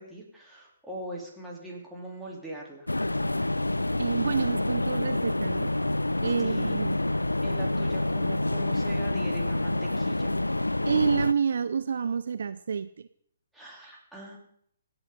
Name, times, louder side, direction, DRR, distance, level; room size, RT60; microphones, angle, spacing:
voice 1, 0.0-2.9 6.4-6.8 7.4-10.3 13.5-14.4, right 1 dB, 5° right, -4 dB, 3.4 m, -41 dB
sound 1, 2.9-11.3, left 1 dB, 80° left, 0.4 m, -27 dB
voice 2, 4.0-5.7 6.2-7.0 10.8-13.1, right 6 dB, 55° right, 13 dB, 0.5 m, -28 dB
26.0 x 8.9 x 3.9 m, 0.66 s
figure-of-eight pair, 130°, 0 cm